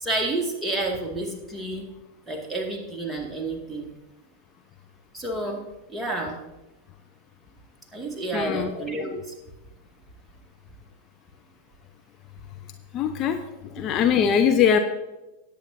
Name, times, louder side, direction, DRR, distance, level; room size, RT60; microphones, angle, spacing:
voice 1, 0.0-1.9 2.3-3.9 5.1-5.6 5.9-6.4 7.9-9.3, right 2 dB, 5° right, 0 dB, 2.0 m, -30 dB
voice 2, 8.3-8.7 12.9-13.4 13.7-14.8, left 8 dB, 35° left, 7 dB, 0.7 m, -21 dB
18.0 x 8.6 x 2.7 m, 1.0 s
figure-of-eight pair, 90°, 0 cm